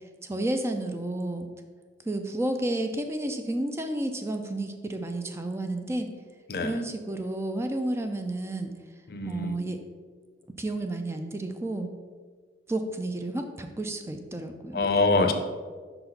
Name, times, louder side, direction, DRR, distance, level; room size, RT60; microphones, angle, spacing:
voice 1, 0.2-1.5 2.1-6.1 6.6-8.7 9.2-9.8 10.6-11.9 12.7-14.9, right 1 dB, 15° right, 5 dB, 0.4 m, -31 dB
voice 2, 9.1-9.6 14.7-15.3, left 3 dB, 55° left, 6 dB, 0.6 m, -24 dB
5.6 x 4.0 x 5.8 m, 1.5 s
head